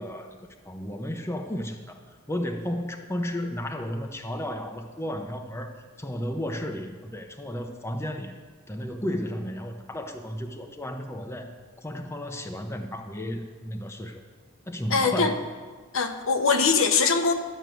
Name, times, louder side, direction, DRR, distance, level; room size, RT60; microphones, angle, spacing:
voice 1, 0.0-8.3 8.7-11.5 11.8-14.2 14.7-15.3, equal, 10° left, 4 dB, 0.7 m, -33 dB
voice 2, 14.9-15.3 15.9-17.3, left 4 dB, 70° left, 5 dB, 1.0 m, -22 dB
12.0 x 6.4 x 9.3 m, 1.4 s
head